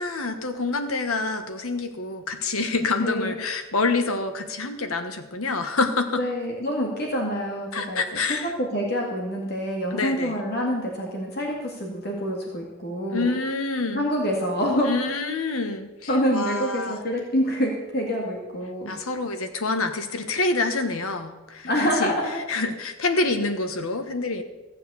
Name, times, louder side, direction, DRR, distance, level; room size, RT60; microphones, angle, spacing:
voice 1, 0.0-6.2 7.7-8.5 9.9-10.3 13.1-14.0 14.8-17.0 18.9-22.1 22.5-24.4, left 3 dB, 90° left, 7 dB, 1.3 m, -27 dB
voice 2, 3.0-3.4 6.1-8.0 8.3-13.3 13.9-14.9 16.1-18.9 21.6-22.4, equal, 50° left, 0 dB, 2.1 m, -26 dB
15.0 x 7.6 x 6.9 m, 1.1 s
head